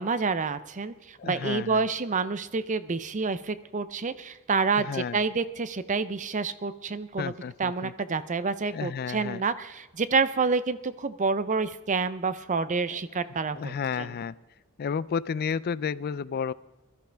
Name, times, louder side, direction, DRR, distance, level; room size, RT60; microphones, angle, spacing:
voice 1, 0.0-7.3 7.6-14.1, right 4 dB, 35° right, 14 dB, 0.6 m, -28 dB
voice 2, 1.2-1.8 4.8-5.2 7.2-7.9 8.7-9.4 12.9-13.0 13.5-14.3 14.8-16.5, left 6 dB, 45° left, 19 dB, 0.4 m, -32 dB
21.0 x 13.0 x 3.4 m, 1.1 s
head